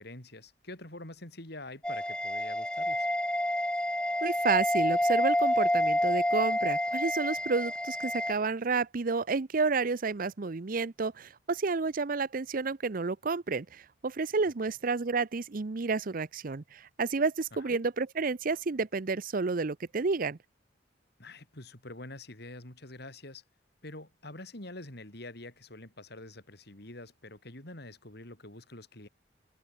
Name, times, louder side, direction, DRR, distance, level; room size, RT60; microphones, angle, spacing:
voice 1, 0.0-3.1 17.5-17.8 21.2-23.4 23.8-29.1, left 2 dB, 60° left, 4.5 m, -46 dB
sound 1, 1.8-8.3, left 1 dB, 5° left, 1.5 m, -28 dB
voice 2, 4.2-20.4, right 4 dB, 50° right, 0.6 m, -30 dB
head